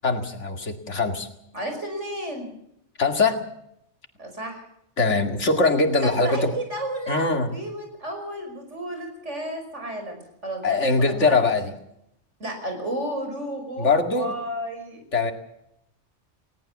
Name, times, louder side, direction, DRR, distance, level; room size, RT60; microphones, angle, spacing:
voice 1, 0.0-1.3 3.0-3.4 5.0-6.5 7.1-7.5 10.6-11.8 13.8-14.3 15.1-15.3, left 3 dB, 75° left, 6 dB, 2.5 m, -22 dB
voice 2, 1.5-2.5 4.2-4.7 6.0-11.5 12.4-15.0, right 1 dB, 75° right, 4 dB, 6.0 m, -33 dB
20.0 x 18.5 x 7.2 m, 0.77 s
omnidirectional pair, 1.2 m